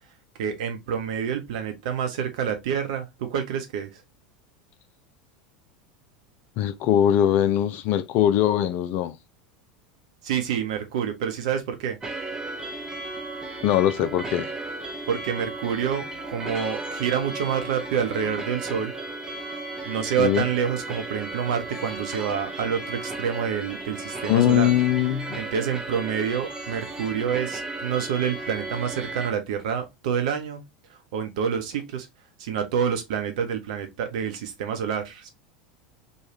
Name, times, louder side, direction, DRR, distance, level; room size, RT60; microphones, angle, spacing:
voice 1, 0.4-4.0 10.2-12.0 15.1-18.9 19.9-24.7 25.3-30.6 30.9-32.1 32.4-35.3, right 7 dB, 60° right, 0.8 m, -28 dB
voice 2, 6.6-9.1 13.6-14.5 20.2-20.4 24.3-25.4, left 11 dB, 45° left, 0.4 m, -21 dB
sound 1, 12.0-29.3, right 2 dB, 15° right, 0.8 m, -35 dB
3.1 x 2.3 x 2.9 m
figure-of-eight pair, 80°, 4 cm